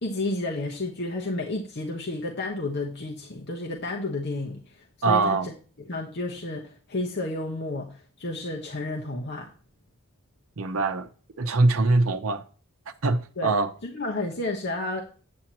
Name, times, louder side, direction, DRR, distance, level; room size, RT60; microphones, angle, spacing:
voice 1, 0.0-5.5 5.9-9.5 13.4-13.5 13.8-15.0, left 2 dB, 50° left, 1.1 m, -31 dB
voice 2, 5.0-5.5 10.6-11.1 11.4-12.4 13.0-13.7, right 3 dB, 70° right, 0.7 m, -23 dB
8.6 x 7.4 x 2.9 m
head